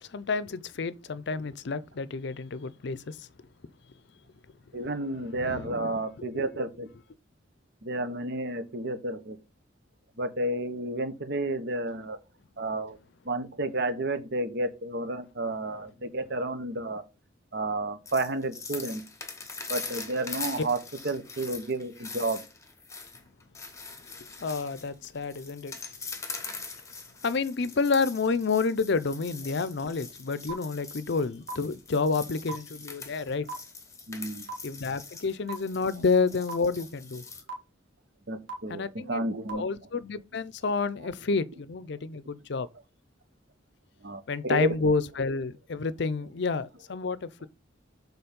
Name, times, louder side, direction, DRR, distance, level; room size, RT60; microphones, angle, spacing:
voice 1, 0.0-3.3 4.8-4.9 5.4-5.7 6.2-6.4 24.2-25.8 27.2-33.5 34.6-37.2 38.7-39.2 39.5-42.7 44.3-47.5, left 4 dB, 60° left, 0.5 m, -29 dB
voice 2, 4.7-6.9 7.8-9.4 10.2-12.2 12.6-13.0 13.2-17.0 17.5-19.0 19.7-20.8 21.0-22.4 34.1-34.5 38.3-39.6 44.0-44.7, right 2 dB, 60° right, 1.1 m, -31 dB
sound 1, 18.1-37.4, left 4 dB, 15° left, 1.1 m, -42 dB
sound 2, 30.5-30.6 31.5-31.6 32.5-32.6 33.5-33.6 34.5-34.6 35.5-35.6 36.5-36.6 37.5-37.6 38.5-38.6 39.5-39.6, right 5 dB, 75° right, 1.7 m, -35 dB
7.0 x 4.0 x 5.2 m
head